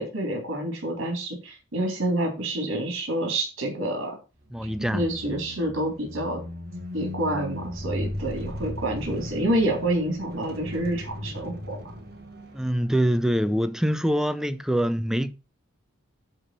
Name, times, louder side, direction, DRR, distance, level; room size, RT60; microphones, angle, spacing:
voice 1, 0.0-4.1 4.8-6.4 6.9-11.8, right 1 dB, 70° right, 3.5 m, -28 dB
sound 1, 4.4-13.1, left 1 dB, 45° right, 1.7 m, -37 dB
voice 2, 4.5-5.1 12.5-15.3, equal, ahead, 0.5 m, -24 dB
11.0 x 3.7 x 6.7 m
head